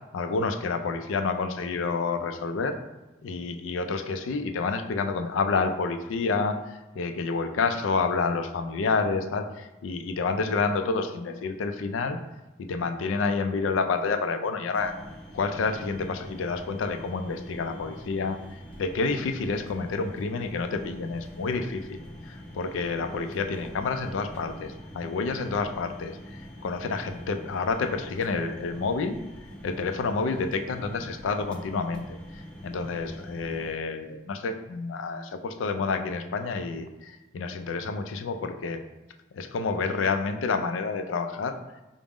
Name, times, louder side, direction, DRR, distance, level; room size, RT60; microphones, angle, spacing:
voice 1, 0.1-2.8 3.2-12.2 12.6-14.9 15.3-18.4 18.8-22.0 22.3-29.2 29.6-32.2 32.6-38.8 39.3-41.6, left 4 dB, 90° left, 7 dB, 0.4 m, -29 dB
sound 1, 14.7-33.7, equal, 5° left, 0.4 m, -44 dB
4.8 x 2.0 x 3.5 m, 1.0 s
head